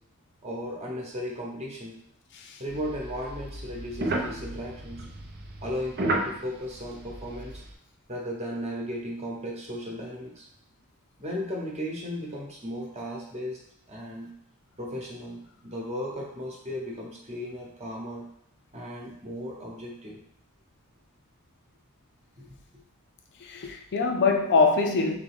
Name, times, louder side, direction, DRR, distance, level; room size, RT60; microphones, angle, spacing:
voice 1, 0.4-1.9 2.6-5.1 5.6-7.6 8.1-10.5 11.2-13.6 13.9-14.3 14.8-18.2 18.7-20.2 22.4-22.5, equal, 30° right, -2 dB, 1.0 m, -36 dB
sound 1, 2.7-7.7, right 1 dB, 45° right, 0.6 m, -33 dB
voice 2, 23.4-25.2, left 4 dB, 50° left, 4 dB, 0.5 m, -23 dB
3.7 x 3.6 x 3.5 m, 0.71 s
head